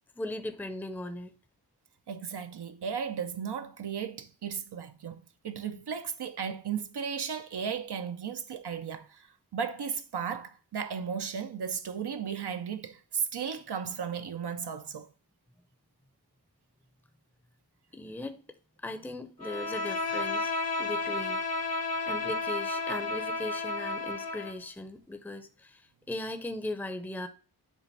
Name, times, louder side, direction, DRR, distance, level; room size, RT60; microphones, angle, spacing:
voice 1, 0.2-1.3 17.9-18.4 18.8-20.5 20.8-21.4 21.7-21.8 22.1-25.8 26.1-27.3, left 2 dB, 5° left, 0.6 m, -38 dB
voice 2, 2.1-9.3 9.5-15.1, right 7 dB, 80° right, 0.6 m, -35 dB
Bowed string instrument, 19.4-24.6, left 3 dB, 65° left, 1.2 m, -32 dB
7.3 x 2.5 x 5.4 m
wide cardioid pair, 55°, 39 cm